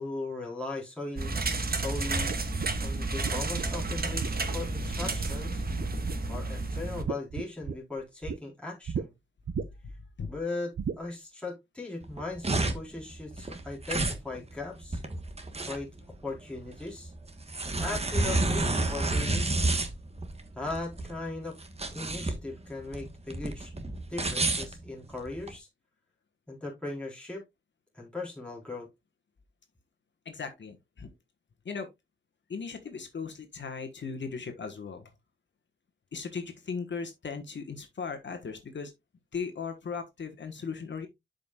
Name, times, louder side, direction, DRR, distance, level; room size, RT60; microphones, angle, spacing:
voice 1, 0.0-2.4 2.8-5.6 6.3-9.1 10.3-15.0 15.7-15.9 16.2-17.1 17.6-19.7 20.6-21.6 21.9-23.7 24.1-25.7 26.5-27.4 27.9-28.9, left 2 dB, 5° left, 3.9 m, -38 dB
sound 1, 1.2-7.0, right 3 dB, 50° right, 1.4 m, -31 dB
sound 2, 2.2-5.5 5.8-6.4 6.7-8.4 8.9-9.1 9.5-10.0 10.8-11.0, right 7 dB, 65° right, 0.6 m, -36 dB
sound 3, 12.0-25.5, right 2 dB, 30° right, 1.3 m, -30 dB
voice 2, 30.2-31.1 31.6-31.9 32.5-35.1 36.1-38.9 39.3-41.1, left 5 dB, 65° left, 1.3 m, -37 dB
11.5 x 5.2 x 2.3 m
wide cardioid pair, 130°, 20 cm